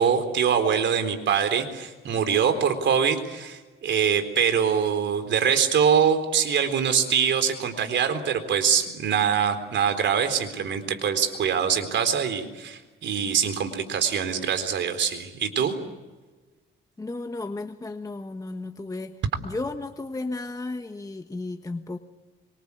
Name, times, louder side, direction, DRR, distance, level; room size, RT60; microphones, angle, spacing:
voice 1, 0.0-15.7, right 7 dB, 65° right, 8 dB, 4.0 m, -24 dB
voice 2, 17.0-22.0, left 2 dB, 15° left, 7 dB, 1.3 m, -34 dB
25.5 x 25.0 x 8.5 m, 1.2 s
cardioid pair, 90°, 20 cm